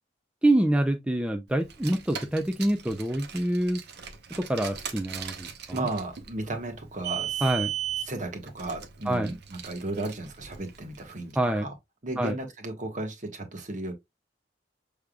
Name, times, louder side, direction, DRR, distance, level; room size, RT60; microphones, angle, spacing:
voice 1, 0.4-3.8 4.4-5.8 7.4-7.7 9.1-9.3 11.4-11.7 12.2-12.4, right 1 dB, 5° right, 0.4 m, -26 dB
Car, 1.6-11.1, right 10 dB, 60° right, 0.8 m, -37 dB
voice 2, 5.7-7.4 8.0-11.7 12.0-13.9, right 2 dB, 45° right, 1.2 m, -34 dB
6.4 x 3.4 x 2.3 m
head